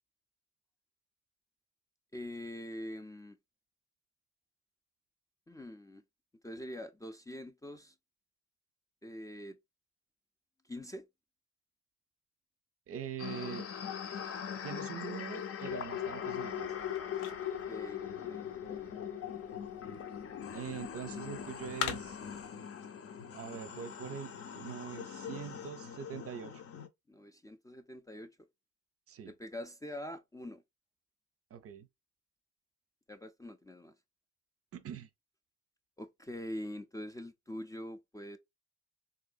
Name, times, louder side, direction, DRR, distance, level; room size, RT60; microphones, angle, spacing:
voice 1, 2.1-3.4 5.5-6.0 6.4-7.9 9.0-9.6 10.6-11.1 17.7-19.0 27.1-28.3 29.2-30.6 33.1-33.9 36.0-38.4, left 1 dB, 10° left, 0.4 m, -44 dB
voice 2, 12.9-13.7 14.6-16.7 20.5-22.2 23.3-26.6 29.1-29.3 31.5-31.9 34.7-35.1, right 8 dB, 50° right, 0.5 m, -43 dB
sound 1, 13.2-26.9, left 8 dB, 50° left, 0.6 m, -41 dB
sound 2, 15.6-22.5, left 9 dB, 90° left, 0.6 m, -46 dB
3.8 x 2.6 x 2.3 m
cardioid pair, 90°, 30 cm